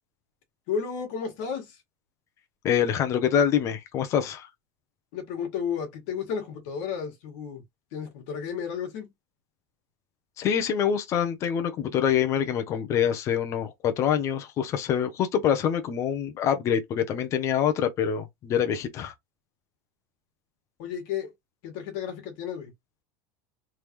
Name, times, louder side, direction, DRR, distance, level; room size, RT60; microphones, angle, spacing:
voice 1, 0.7-1.8 5.1-7.6 7.9-9.1 20.8-21.3 21.6-22.7, left 7 dB, 60° left, 1.7 m, -32 dB
voice 2, 2.6-4.5 10.4-19.1, left 8 dB, 30° left, 0.8 m, -25 dB
3.7 x 3.4 x 3.1 m
supercardioid pair, 165°, 10 cm